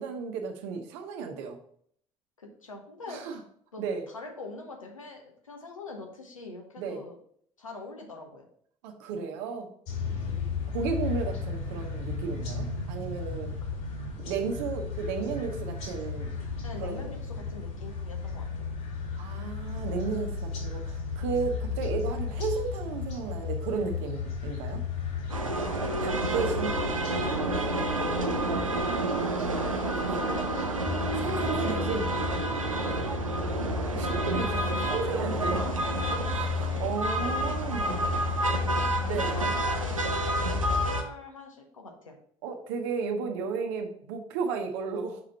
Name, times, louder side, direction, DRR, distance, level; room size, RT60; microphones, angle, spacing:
voice 1, 0.0-1.6 3.1-3.4 3.8-4.0 6.8-7.0 8.8-9.7 10.7-13.6 14.2-16.3 16.8-17.0 19.2-24.8 26.0-26.7 30.0-30.2 31.2-32.1 33.9-35.6 36.3-38.1 39.0-39.4 42.4-45.2, right 5 dB, 65° right, 4 dB, 1.0 m, -33 dB
voice 2, 2.4-3.4 3.7-7.2 7.6-8.5 10.3-10.5 13.6-13.8 16.6-18.7 25.9-27.0 27.8-30.8 31.0-32.4 32.8-33.0 35.6-36.3 36.6-36.9 37.6-42.1, left 3 dB, 85° left, 2 dB, 1.0 m, -44 dB
sound 1, 9.9-29.1, left 5 dB, 55° left, 2.2 m, -35 dB
sound 2, 25.3-41.0, right 2 dB, 90° right, 0.6 m, -29 dB
sound 3, 30.9-40.9, left 6 dB, 20° left, 0.5 m, -35 dB
5.9 x 5.0 x 4.2 m, 0.64 s
figure-of-eight pair, 55°, 17 cm